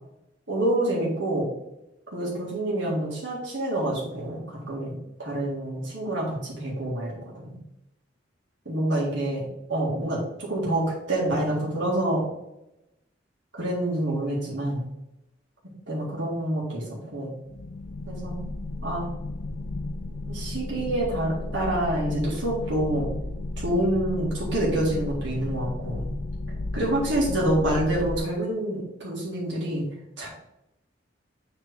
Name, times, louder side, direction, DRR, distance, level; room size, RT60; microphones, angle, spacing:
voice 1, 0.5-1.5 2.1-4.9 5.2-7.6 8.7-12.2 13.5-14.9 15.9-16.8 17.1-17.3 18.1-18.4 18.8-19.1 20.3-23.1 23.6-26.1 26.7-29.9 30.2-30.3, right 1 dB, 70° right, -5 dB, 1.9 m, -27 dB
sound 1, 17.5-28.2, left 2 dB, 80° left, 0.6 m, -33 dB
7.4 x 3.3 x 4.8 m, 0.90 s
head